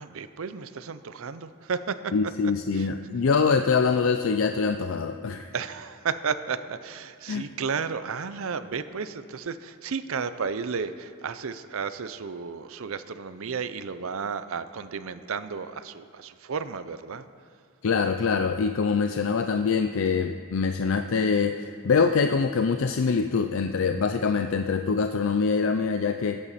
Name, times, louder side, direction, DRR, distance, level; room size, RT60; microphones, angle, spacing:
voice 1, 0.0-2.9 5.5-17.3, right 5 dB, 70° right, 12 dB, 0.5 m, -33 dB
voice 2, 2.1-5.5 7.3-7.4 17.8-26.4, left 5 dB, 65° left, 7 dB, 0.4 m, -24 dB
20.5 x 8.6 x 4.2 m, 2.3 s
head